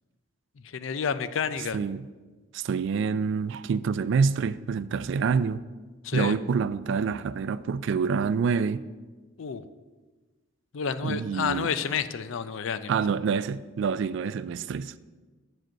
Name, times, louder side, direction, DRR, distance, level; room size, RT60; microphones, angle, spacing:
voice 1, 0.6-1.8 6.0-6.3 9.4-9.7 10.7-12.9, left 6 dB, 65° left, 0.4 m, -30 dB
voice 2, 2.5-5.6 6.1-8.9 11.0-11.7 12.9-14.9, right 5 dB, 60° right, 0.3 m, -27 dB
7.5 x 5.0 x 6.5 m
head